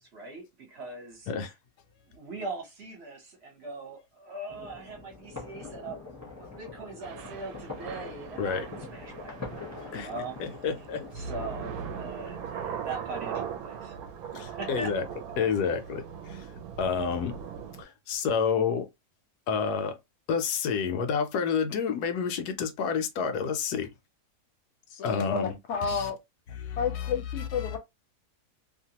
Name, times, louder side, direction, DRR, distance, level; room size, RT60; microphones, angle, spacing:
voice 1, 0.1-1.3 2.1-6.0 6.4-10.4 11.1-14.0 14.5-14.9, right 2 dB, 45° right, 1.1 m, -41 dB
sound 1, 4.5-12.1, left 3 dB, 15° left, 0.6 m, -44 dB
Thunder / Rain, 7.0-17.8, right 7 dB, 75° right, 1.0 m, -40 dB
voice 2, 10.4-11.0 14.3-15.1 15.4-16.5 16.8-17.3 17.8-18.9 19.5-20.0 20.3-23.9 25.0-25.5 25.9-26.1 26.6-27.8, left 6 dB, 85° left, 1.2 m, -29 dB
voice 3, 24.9-26.2 26.8-27.8, left 6 dB, 60° left, 0.8 m, -31 dB
2.9 x 2.2 x 2.8 m
omnidirectional pair, 1.7 m